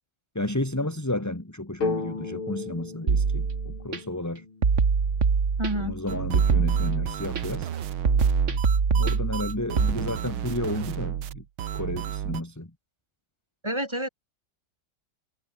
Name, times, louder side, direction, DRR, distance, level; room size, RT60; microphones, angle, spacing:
voice 1, 0.3-4.5 5.7-7.7 8.9-11.4 11.7-12.7, left 1 dB, 10° left, 2.2 m, -32 dB
sound 1, 1.8-5.5, left 3 dB, 85° left, 5.9 m, -35 dB
sound 2, 3.1-4.0 4.6-6.0 6.3-7.4 8.1-9.9, right 5 dB, 40° right, 1.9 m, -23 dB
voice 2, 5.6-6.0 13.6-14.1, right 1 dB, 15° right, 5.3 m, -28 dB
sound 3, 6.1-12.4, right 10 dB, 90° right, 2.1 m, -33 dB
omnidirectional pair, 2.2 m